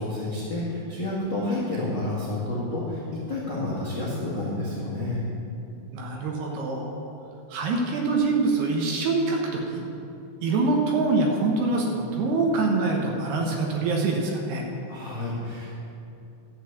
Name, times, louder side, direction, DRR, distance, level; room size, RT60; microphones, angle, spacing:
voice 1, 0.0-5.2 14.9-15.7, left 2 dB, 45° left, -7 dB, 1.5 m, -30 dB
voice 2, 5.9-7.1 7.5-9.8 10.4-14.7, right 3 dB, 70° right, 0 dB, 2.6 m, -25 dB
12.5 x 8.1 x 8.2 m, 2.8 s
omnidirectional pair, 6.0 m